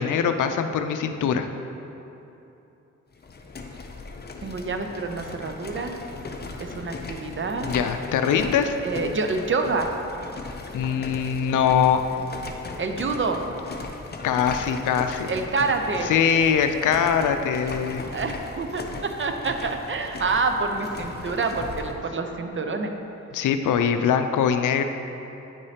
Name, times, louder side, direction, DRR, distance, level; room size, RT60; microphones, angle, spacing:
voice 1, 0.0-1.5 7.6-8.7 10.7-12.0 14.2-15.3 16.0-18.0 23.3-24.8, left 7 dB, 75° left, 8 dB, 0.5 m, -22 dB
sound 1, 3.1-22.0, left 3 dB, 30° left, 0.6 m, -38 dB
voice 2, 4.4-6.0 6.6-7.7 8.8-9.9 12.8-13.4 15.3-16.1 18.1-22.9, right 3 dB, 40° right, 5 dB, 0.6 m, -27 dB
9.3 x 4.9 x 2.8 m, 2.9 s
cardioid pair, 65°, 31 cm